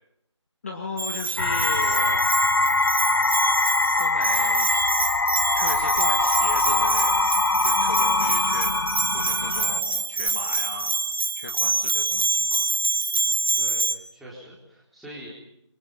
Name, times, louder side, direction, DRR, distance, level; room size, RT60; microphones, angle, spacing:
voice 1, 0.6-2.5 4.0-4.8 5.5-7.3 7.6-8.8 9.1-10.9 11.4-12.6, left 3 dB, 25° left, 3 dB, 2.2 m, -36 dB
Bell, 1.0-13.9, right 4 dB, 45° right, 1.7 m, -26 dB
sound 1, 1.4-9.8, left 3 dB, 50° left, 0.9 m, -23 dB
voice 2, 13.6-15.3, right 1 dB, ahead, -8 dB, 3.9 m, -43 dB
27.5 x 23.5 x 5.5 m, 0.76 s
figure-of-eight pair, 170°, 16 cm